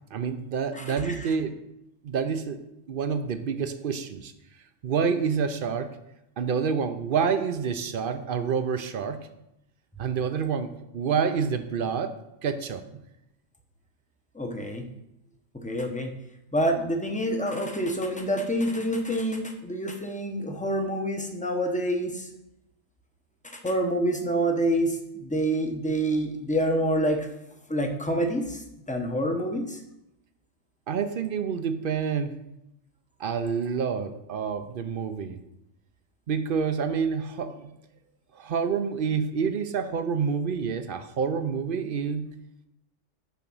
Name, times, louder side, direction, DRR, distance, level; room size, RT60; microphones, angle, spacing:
voice 1, 0.1-1.6 2.0-2.6 2.9-4.3 4.8-5.9 6.4-9.2 10.0-12.1 12.4-12.8 30.9-32.3 33.2-35.4 36.3-37.7 38.4-42.3, right 6 dB, 55° right, 9 dB, 0.7 m, -28 dB
voice 2, 0.7-1.3 14.3-14.8 15.5-16.1 16.5-22.3 23.4-27.3 27.7-29.8, right 1 dB, 5° left, 3 dB, 0.7 m, -27 dB
7.0 x 5.1 x 6.0 m, 0.87 s
omnidirectional pair, 1.3 m